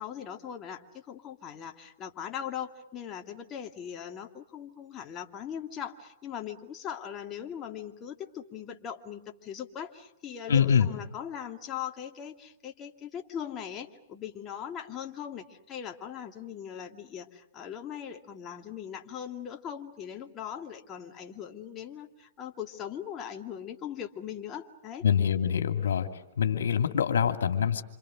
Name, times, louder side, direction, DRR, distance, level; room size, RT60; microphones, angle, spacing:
voice 1, 0.0-25.0, left 9 dB, 25° left, 3 dB, 2.4 m, -40 dB
voice 2, 10.5-10.9 25.0-26.1 26.4-27.8, left 7 dB, 70° left, 6 dB, 2.9 m, -24 dB
27.5 x 27.5 x 6.5 m, 0.91 s
hypercardioid pair, 120°, 0 cm